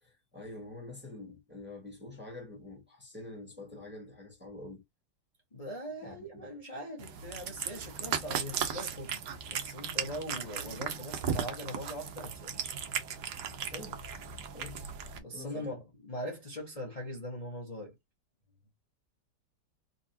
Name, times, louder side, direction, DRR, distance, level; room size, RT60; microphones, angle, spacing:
voice 1, 0.0-4.8 6.0-6.5 13.7-14.0 14.5-14.9 15.3-15.7, left 2 dB, 5° right, 1.3 m, -46 dB
voice 2, 5.5-9.2 9.5-12.5 15.2-18.0, equal, 25° left, 1.0 m, -41 dB
Cat, 7.0-15.2, right 7 dB, 70° right, 1.3 m, -36 dB
4.0 x 3.1 x 2.7 m
omnidirectional pair, 1.9 m